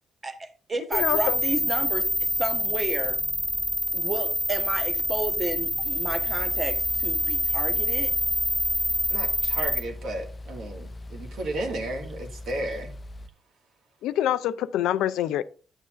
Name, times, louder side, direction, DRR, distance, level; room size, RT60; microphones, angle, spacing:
voice 1, 0.2-3.2 3.9-8.1, right 2 dB, 30° right, 1.1 m, -32 dB
voice 2, 0.9-1.4 14.0-15.4, left 12 dB, 85° left, 0.4 m, -25 dB
sound 1, 0.9-9.8, equal, 5° right, 1.7 m, -26 dB
sound 2, 3.5-13.3, left 1 dB, 30° left, 0.5 m, -41 dB
voice 3, 9.1-12.9, right 1 dB, 75° right, 1.9 m, -33 dB
9.9 x 6.8 x 2.5 m
cardioid pair, 90°, 0 cm